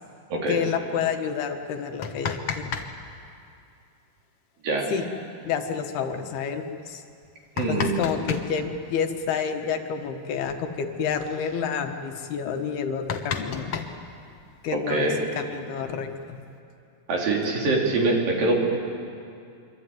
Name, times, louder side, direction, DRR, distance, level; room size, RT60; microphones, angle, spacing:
voice 1, 0.5-2.8 4.9-5.0 5.5-7.0 7.7-13.7 14.6-16.4, left 6 dB, 80° left, 5 dB, 3.4 m, -29 dB
sound 1, 1.8-2.9 3.1-3.2 5.0-5.1 5.5-5.6 6.2-6.3 7.1-8.5 10.0-10.1 10.4-10.6 10.9-11.3 11.9-12.0 12.3-12.4 12.7-14.6 15.5-16.4, left 7 dB, 60° left, 1.6 m, -32 dB
voice 2, 7.6-7.9 14.7-15.2 17.1-18.6, right 2 dB, 60° right, -1 dB, 5.0 m, -24 dB
25.0 x 24.5 x 9.3 m, 2.5 s
omnidirectional pair, 4.6 m